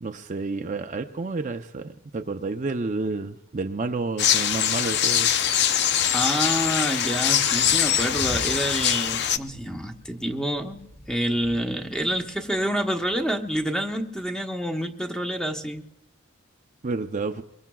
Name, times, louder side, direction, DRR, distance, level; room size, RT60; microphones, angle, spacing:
voice 1, 0.0-5.3 16.8-17.4, right 3 dB, 40° right, 6 dB, 0.6 m, -30 dB
sound 1, 4.2-9.4, left 9 dB, 55° left, 0.5 m, -23 dB
voice 2, 6.1-15.8, equal, 5° left, 3 dB, 1.0 m, -28 dB
Thunder, 7.4-14.2, equal, 30° left, 3.3 m, -43 dB
23.0 x 22.5 x 2.3 m, 0.88 s
head